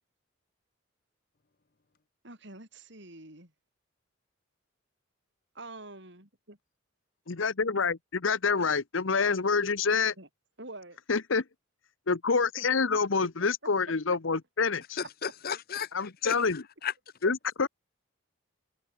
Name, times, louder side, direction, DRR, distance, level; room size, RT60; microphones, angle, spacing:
voice 1, 2.2-3.5 5.5-6.6 10.2-10.3 10.6-11.0 12.6-12.7, right 2 dB, 55° right, 6.2 m, -46 dB
voice 2, 7.3-10.1 11.1-11.4 12.1-15.0 15.9-16.6 17.2-17.7, left 5 dB, 70° left, 0.9 m, -27 dB
voice 3, 15.0-16.9, left 7 dB, 45° left, 0.9 m, -35 dB
head